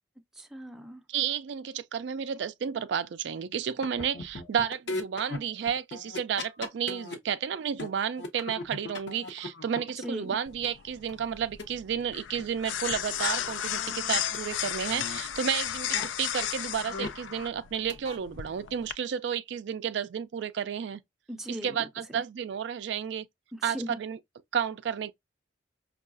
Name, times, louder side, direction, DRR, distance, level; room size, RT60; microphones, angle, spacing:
voice 1, 0.3-1.1 10.0-10.4 21.3-22.2 23.5-24.0, equal, ahead, 0.5 m, -39 dB
voice 2, 1.1-21.0 21.6-23.3 23.6-24.2 24.5-25.1, right 8 dB, 65° right, 0.3 m, -32 dB
sound 1, 3.8-7.2 7.5-10.7 11.1-11.2 11.6-11.7 12.0-12.1 12.4-12.5 12.8-12.9 13.2-14.4 14.6-15.2 15.9-16.1 16.6-17.3 17.6-18.2, left 2 dB, 65° left, 0.8 m, -39 dB
sound 2, 10.5-18.9, left 10 dB, 85° left, 0.4 m, -34 dB
5.4 x 2.3 x 2.4 m
head